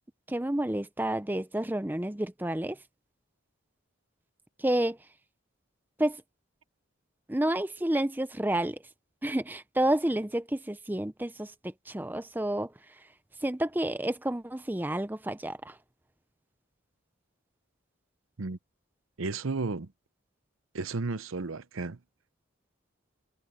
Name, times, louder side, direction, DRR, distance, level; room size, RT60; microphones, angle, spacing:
voice 1, 0.3-2.8 4.6-5.0 6.0-6.2 7.3-8.8 9.2-13.1 13.4-15.8, right 1 dB, 10° right, 0.5 m, -30 dB
voice 2, 19.2-19.9 20.7-22.0, right 3 dB, 80° right, 0.8 m, -33 dB
head